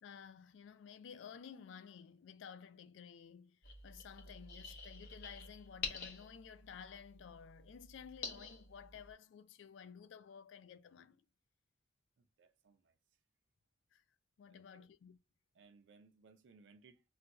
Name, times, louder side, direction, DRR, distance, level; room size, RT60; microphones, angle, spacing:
voice 1, 0.0-11.2 13.9-14.0 14.4-15.2, left 7 dB, 75° left, 0.3 m, -54 dB
sound 1, 3.6-9.1, left 4 dB, 50° left, 0.7 m, -48 dB
voice 2, 12.2-13.0 14.5-14.9 15.5-17.0, right 4 dB, 75° right, 0.4 m, -64 dB
2.4 x 2.2 x 3.9 m
head